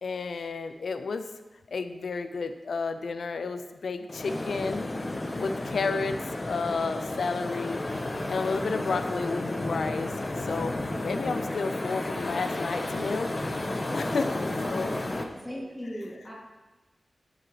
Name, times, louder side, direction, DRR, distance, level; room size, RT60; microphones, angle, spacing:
voice 1, 0.0-1.3 1.7-4.9 5.4-7.8 8.3-10.1 10.4-10.8 11.0-13.3 13.9-15.0, left 4 dB, 85° left, 9 dB, 0.5 m, -31 dB
sound 1, 4.1-15.2, left 2 dB, 45° left, 1.0 m, -32 dB
voice 2, 14.7-16.3, equal, 20° left, -6 dB, 2.5 m, -39 dB
10.0 x 7.6 x 3.2 m, 1.1 s
cardioid pair, 45°, 0 cm